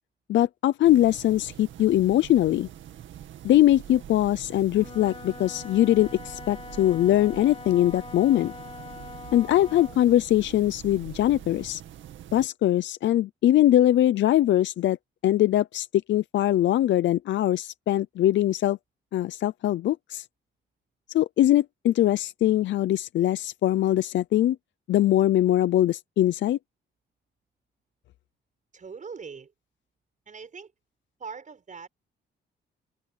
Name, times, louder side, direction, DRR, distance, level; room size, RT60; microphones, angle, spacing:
voice 1, 0.3-2.7 3.4-8.5 9.3-11.8 12.3-15.0 15.2-18.8 19.1-20.2 21.1-24.6 24.9-26.6, left 13 dB, 70° left, 0.6 m, -22 dB
sound 1, 0.8-12.5, right 11 dB, 75° right, 2.1 m, -44 dB
Wind instrument woodwind instrument, 4.6-10.1, left 4 dB, 25° left, 1.4 m, -43 dB
voice 2, 28.7-29.5 30.3-30.7 31.2-31.9, right 5 dB, 40° right, 7.2 m, -41 dB
open air
cardioid pair, 90°, 20 cm